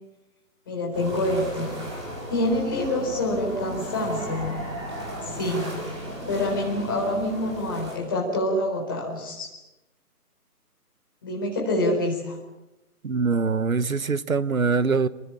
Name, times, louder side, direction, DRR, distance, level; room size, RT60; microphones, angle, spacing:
voice 1, 0.7-1.7 2.3-4.5 5.2-5.7 6.3-9.5 11.2-12.4, left 1 dB, 15° left, -3 dB, 4.3 m, -26 dB
sound 1, 0.9-8.0, equal, 20° right, 4.8 m, -35 dB
voice 2, 13.0-15.1, right 4 dB, 60° right, 16 dB, 1.2 m, -23 dB
27.5 x 23.0 x 8.7 m, 1.0 s
hypercardioid pair, 180°, 47 cm